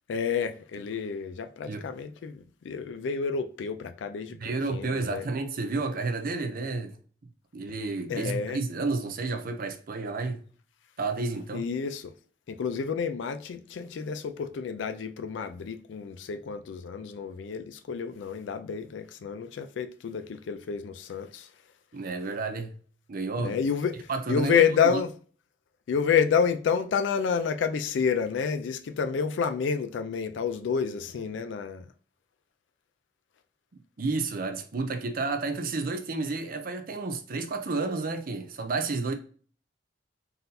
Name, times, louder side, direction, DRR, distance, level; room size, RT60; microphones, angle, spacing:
voice 1, 0.1-4.4 4.7-5.3 8.1-8.6 11.5-12.1 12.5-21.5 23.4-25.1 25.9-31.9, left 6 dB, 85° left, 0.4 m, -29 dB
voice 2, 4.4-7.0 7.5-10.4 11.0-11.6 21.9-22.8 23.1-23.6 24.1-25.0 34.0-39.1, right 3 dB, 50° right, 0.5 m, -31 dB
4.0 x 2.6 x 4.0 m
head